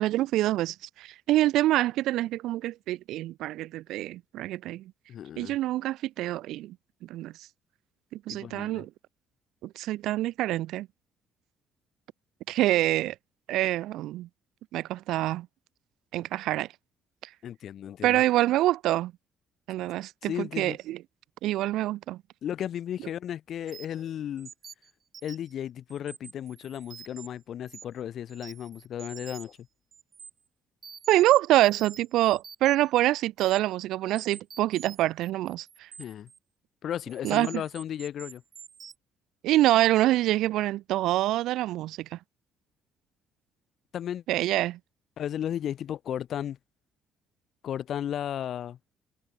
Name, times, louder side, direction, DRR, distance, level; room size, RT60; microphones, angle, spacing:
voice 1, 0.0-4.9 5.4-6.8 7.0-7.5 8.1-8.9 9.6-10.9 12.5-13.1 13.5-14.3 14.7-15.5 16.1-16.7 18.0-19.1 19.7-21.0 21.4-22.2 31.1-35.9 37.2-37.6 39.4-42.2 44.3-44.8, right 15 dB, 80° right, 1.1 m, -26 dB
voice 2, 5.1-5.5 8.3-8.8 17.4-18.2 20.2-20.8 22.4-24.5 25.2-29.7 36.0-36.3 36.8-38.4 43.9-44.2 45.2-46.6 47.6-48.8, left 10 dB, 55° left, 1.6 m, -34 dB
sound 1, 23.7-24.0 24.4-25.5 25.9-27.3 27.7-28.0 28.3-29.6 29.9-30.3 30.8-32.9 33.4-33.6 34.2-36.4 37.1-39.0, right 7 dB, 40° right, 1.6 m, -47 dB
cardioid pair, 140°, 0 cm